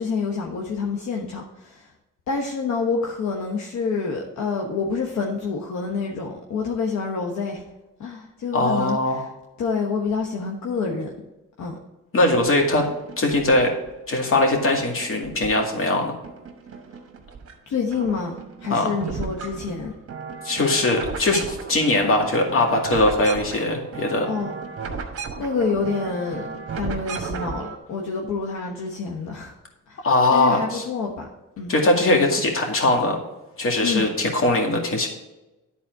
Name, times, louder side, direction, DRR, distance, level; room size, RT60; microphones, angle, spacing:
voice 1, 0.0-1.9 2.3-7.6 8.0-9.3 9.6-11.1 11.6-11.8 17.7-19.9 24.3-24.5 24.8-25.1 25.4-26.5 26.7-29.5 29.9-30.0 30.3-31.3 31.6-31.7 33.8-34.1, left 5 dB, 70° left, 1 dB, 1.2 m, -27 dB
voice 2, 8.5-9.2 12.1-12.9 13.2-13.7 14.1-16.1 18.7-19.0 20.4-24.3 30.0-30.8 31.7-33.2 33.6-35.1, left 2 dB, 45° left, 2 dB, 2.1 m, -20 dB
sound 1, 12.4-13.9 14.3-15.9 16.2-17.5 17.8-27.8, right 5 dB, 50° right, 1.3 m, -35 dB
10.5 x 4.2 x 4.7 m, 1.0 s
cardioid pair, 90°, 30 cm